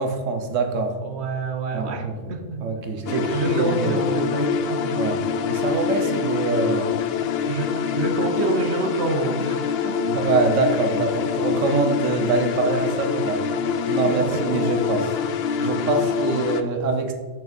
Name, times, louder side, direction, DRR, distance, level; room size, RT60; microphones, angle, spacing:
voice 1, 0.0-1.0 1.7-2.3 2.6-4.0 5.0-6.9 10.1-13.4 13.9-15.2 15.6-17.1, right 3 dB, 80° right, 6 dB, 1.3 m, -24 dB
voice 2, 1.0-2.7 3.0-5.2 7.4-10.1 13.2-13.3 13.9-14.5, right 3 dB, 60° right, 6 dB, 1.1 m, -28 dB
sound 1, 3.1-16.6, left 6 dB, 60° left, 0.7 m, -25 dB
8.0 x 6.6 x 4.3 m, 1.4 s
omnidirectional pair, 1.3 m